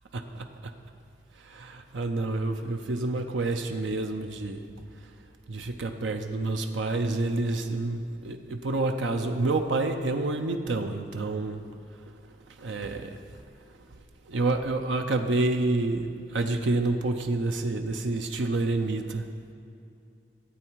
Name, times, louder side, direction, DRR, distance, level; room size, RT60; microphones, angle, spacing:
voice 1, 0.1-0.7 1.4-4.6 5.0-5.1 5.5-11.6 12.5-13.2 14.3-19.3, right 2 dB, 90° right, 5 dB, 0.6 m, -28 dB
13.0 x 8.1 x 4.6 m, 2.6 s
head